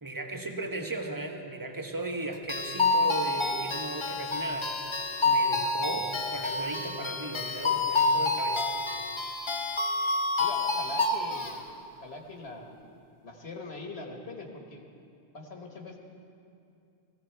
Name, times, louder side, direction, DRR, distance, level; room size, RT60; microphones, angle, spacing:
voice 1, 0.0-4.7 5.2-8.7, right 2 dB, 20° right, 3 dB, 1.1 m, -36 dB
sound 1, 2.5-11.6, left 3 dB, 30° left, 0.8 m, -28 dB
voice 2, 10.4-12.7 13.2-14.8 15.3-16.0, left 2 dB, 75° left, 2 dB, 1.7 m, -42 dB
18.0 x 15.5 x 4.5 m, 2.6 s
omnidirectional pair, 1.1 m